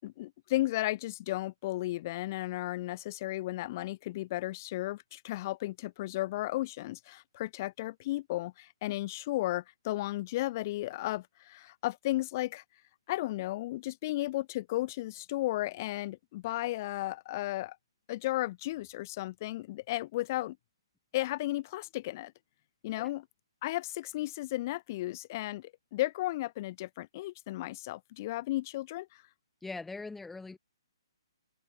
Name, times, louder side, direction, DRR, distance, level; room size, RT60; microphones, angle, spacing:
voice 1, 0.0-12.6 13.1-17.8 18.1-20.6 21.1-22.3 22.8-23.2 23.6-29.2, left 17 dB, 40° left, 6.5 m, -34 dB
voice 2, 29.6-30.6, left 3 dB, 5° left, 2.2 m, -41 dB
hypercardioid pair, 145°, 3 cm